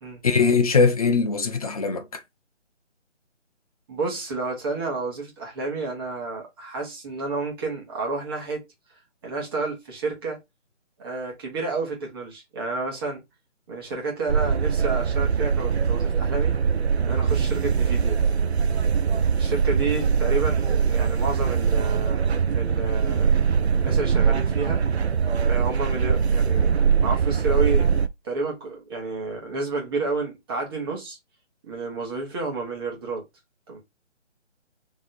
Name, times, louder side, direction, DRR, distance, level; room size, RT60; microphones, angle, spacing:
voice 1, 0.2-2.2, left 5 dB, 30° left, 0.7 m, -21 dB
voice 2, 3.9-8.6 9.2-10.4 11.0-13.2 13.7-16.6 17.0-18.2 19.4-22.2 22.5-23.3 23.8-24.8 25.4-27.9 28.2-31.2 31.6-33.2 33.7-33.8, right 3 dB, 20° right, 1.3 m, -30 dB
sound 1, 14.3-28.1, right 6 dB, 60° right, 0.6 m, -22 dB
3.6 x 3.1 x 4.0 m
figure-of-eight pair, 160°, 36 cm